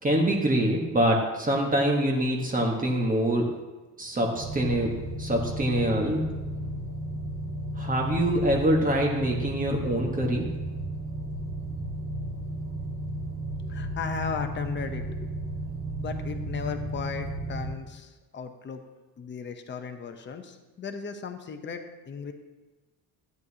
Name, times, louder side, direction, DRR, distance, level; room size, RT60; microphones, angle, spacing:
voice 1, 0.0-3.5 4.0-4.9 5.2-6.2 7.8-10.4, right 1 dB, 20° right, 0 dB, 1.3 m, -25 dB
sound 1, 4.3-17.7, right 1 dB, 55° right, 2.7 m, -34 dB
voice 2, 13.6-15.3 16.0-18.8 19.2-22.3, left 5 dB, 30° left, 6 dB, 0.8 m, -36 dB
13.5 x 9.4 x 2.8 m, 1.2 s
cardioid pair, 165°, 37 cm